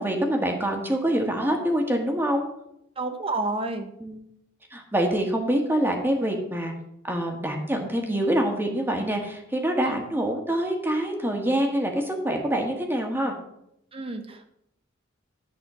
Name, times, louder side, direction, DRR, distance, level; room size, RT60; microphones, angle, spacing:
voice 1, 0.0-2.4 4.0-4.2 4.7-6.7 7.0-13.3, right 1 dB, 10° right, 2 dB, 1.7 m, -25 dB
voice 2, 3.0-3.9 13.9-14.5, right 2 dB, 30° right, 7 dB, 1.0 m, -29 dB
11.5 x 4.2 x 7.4 m, 0.78 s
head